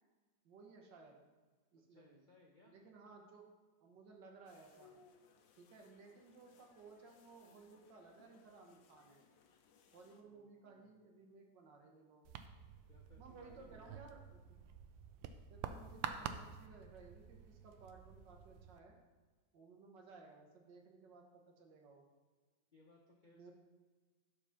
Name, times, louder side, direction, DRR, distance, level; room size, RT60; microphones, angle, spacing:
voice 1, 0.5-1.2 1.7-2.2 2.7-3.5 3.8-4.9 5.6-9.2 9.9-12.2 13.2-14.2 14.5-14.6 15.5-19.0 19.5-22.1 23.2-23.5, right 4 dB, 70° right, 1 dB, 1.8 m, -59 dB
voice 2, 1.9-2.7 10.2-11.0 12.9-14.1 22.7-23.5, left 2 dB, 50° left, -2 dB, 0.5 m, -66 dB
sound 1, 4.5-10.2, left 6 dB, 85° left, 1.5 m, -68 dB
sound 2, 12.2-18.8, right 8 dB, 90° right, 1.3 m, -49 dB
7.3 x 4.8 x 5.7 m, 1.4 s
omnidirectional pair, 2.0 m